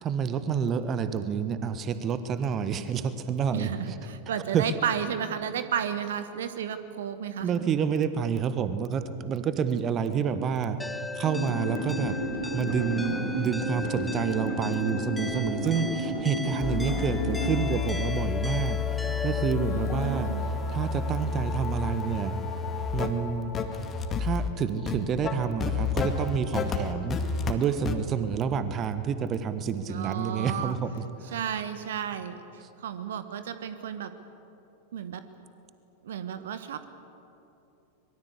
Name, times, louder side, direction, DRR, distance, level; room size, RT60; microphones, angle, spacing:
voice 1, 0.0-4.0 4.5-4.7 7.4-12.2 12.5-22.3 22.9-23.5 24.2-31.4 32.6-32.7, right 7 dB, 30° right, 11 dB, 1.3 m, -29 dB
voice 2, 3.5-7.7 19.6-20.5 29.9-30.7 31.3-34.1 34.9-35.2 36.0-36.9, right 8 dB, 60° right, 11 dB, 1.2 m, -33 dB
sound 1, 10.8-19.5, left 2 dB, 5° left, 1.0 m, -38 dB
sound 2, 11.2-17.6, equal, 85° right, 4.9 m, -32 dB
sound 3, 16.6-27.5 27.8-27.9, left 5 dB, 25° left, 2.1 m, -30 dB
25.0 x 22.0 x 8.3 m, 2.8 s
figure-of-eight pair, 90°, 0 cm